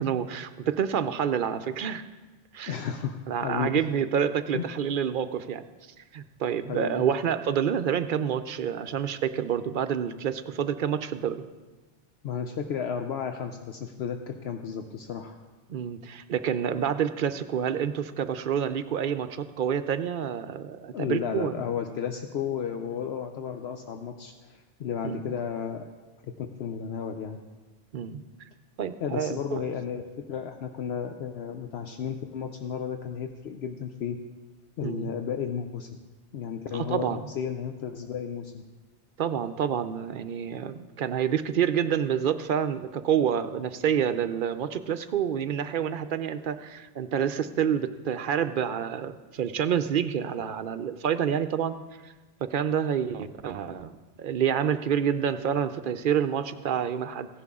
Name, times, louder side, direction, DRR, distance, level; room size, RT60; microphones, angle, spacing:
voice 1, 0.0-2.0 2.5-2.7 3.3-5.6 6.1-11.4 15.7-21.6 25.0-25.2 27.9-28.2 28.8-29.6 34.8-35.1 36.7-37.3 39.2-51.7 52.0-52.1 52.4-53.9 54.2-57.3, right 8 dB, 60° right, 11 dB, 0.6 m, -28 dB
voice 2, 2.7-3.7 4.5-4.6 6.7-7.0 12.2-15.4 20.9-25.9 26.4-27.4 29.0-34.2 34.8-36.0 36.3-38.6, left 7 dB, 70° left, 5 dB, 0.9 m, -33 dB
15.5 x 10.5 x 3.6 m, 1.2 s
omnidirectional pair, 1.2 m